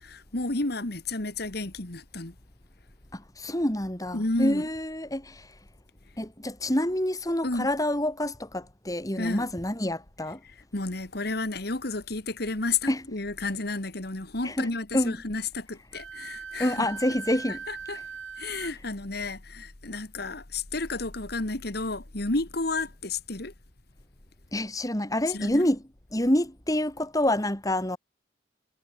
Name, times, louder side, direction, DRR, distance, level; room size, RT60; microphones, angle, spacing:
voice 1, 0.0-2.3 4.1-4.7 7.4-7.7 9.2-9.5 10.2-16.9 17.5-18.0 18.4-23.5 25.3-25.7, left 3 dB, 55° left, 2.2 m, -32 dB
voice 2, 3.1-5.4 6.2-10.4 12.9-13.1 14.4-15.2 16.6-17.6 18.6-18.7 24.5-25.8 26.1-28.0, left 1 dB, 20° left, 3.3 m, -27 dB
Wind instrument woodwind instrument, 15.9-18.7, right 6 dB, 90° right, 2.5 m, -40 dB
head